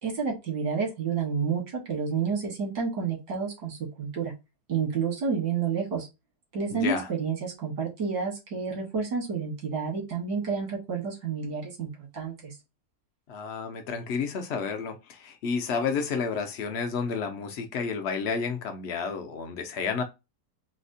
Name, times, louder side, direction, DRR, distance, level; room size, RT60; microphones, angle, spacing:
voice 1, 0.0-4.3 4.7-6.1 6.5-12.5, right 6 dB, 80° right, 2.0 m, -30 dB
voice 2, 6.7-7.1 13.3-20.0, left 5 dB, 75° left, 0.6 m, -31 dB
4.2 x 2.0 x 2.6 m
omnidirectional pair, 1.8 m